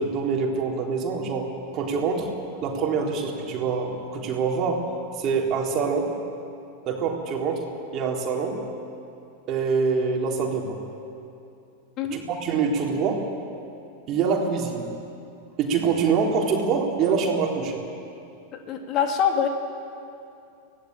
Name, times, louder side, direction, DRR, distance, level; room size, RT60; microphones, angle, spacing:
voice 1, 0.0-2.3 2.6-4.9 5.2-6.1 6.9-7.7 7.9-8.6 9.5-10.8 12.3-13.2 14.1-14.9 15.6-17.8, right 5 dB, 35° right, 0 dB, 3.8 m, -25 dB
voice 2, 18.5-19.5, left 7 dB, 35° left, 4 dB, 2.6 m, -24 dB
24.0 x 17.5 x 8.8 m, 2.7 s
figure-of-eight pair, 90°, 0 cm